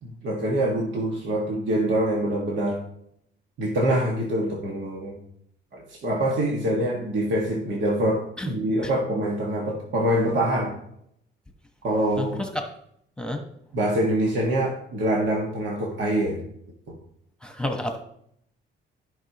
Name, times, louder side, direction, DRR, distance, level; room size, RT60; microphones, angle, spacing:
voice 1, 0.0-2.8 3.6-5.2 5.7-10.7 11.8-12.4 13.7-16.4 16.9-17.0, right 1 dB, 70° right, -2 dB, 1.9 m, -25 dB
voice 2, 12.2-12.7 13.2-13.4 17.4-18.0, left 1 dB, 5° left, 4 dB, 1.3 m, -30 dB
14.0 x 5.6 x 3.1 m, 0.71 s
cardioid pair, 90°, 20 cm